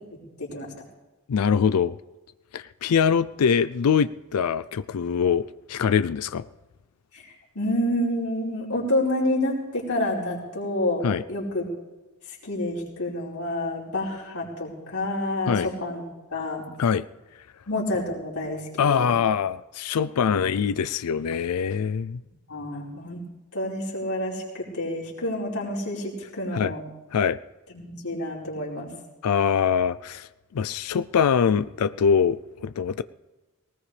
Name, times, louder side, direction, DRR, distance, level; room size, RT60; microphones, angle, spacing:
voice 1, 0.4-0.7 7.1-11.6 12.4-16.0 16.3-16.7 17.7-19.1 22.5-23.2 23.5-26.8 27.7-28.9, left 1 dB, 75° left, -5 dB, 4.7 m, -28 dB
voice 2, 1.3-1.9 2.5-6.4 11.0-11.2 15.5-15.7 16.8-17.0 18.8-22.2 26.5-26.7 27.1-27.4 29.2-33.0, left 7 dB, 90° left, 14 dB, 0.4 m, -23 dB
19.0 x 19.0 x 3.3 m, 1.2 s
head